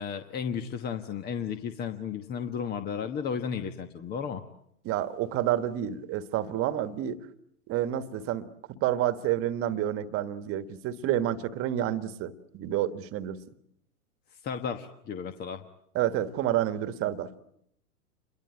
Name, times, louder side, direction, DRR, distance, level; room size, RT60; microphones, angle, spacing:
voice 1, 0.0-4.4 14.4-15.6, left 7 dB, 20° left, 9 dB, 1.2 m, -33 dB
voice 2, 4.8-7.2 7.7-13.4 15.9-17.3, right 12 dB, 30° right, 12 dB, 1.6 m, -29 dB
28.0 x 22.5 x 7.8 m, 0.73 s
hypercardioid pair, 115°, 45 cm